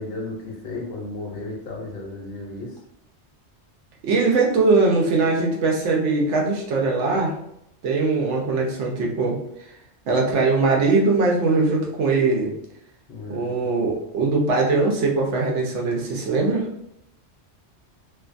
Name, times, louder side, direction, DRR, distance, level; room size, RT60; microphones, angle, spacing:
voice 1, 0.0-2.8 13.1-13.5, left 2 dB, 60° left, -1 dB, 0.8 m, -34 dB
voice 2, 4.0-7.4 7.8-9.4 10.1-12.5 13.3-16.7, right 3 dB, 85° right, -1 dB, 1.0 m, -21 dB
2.5 x 2.2 x 2.5 m, 0.78 s
omnidirectional pair, 1.2 m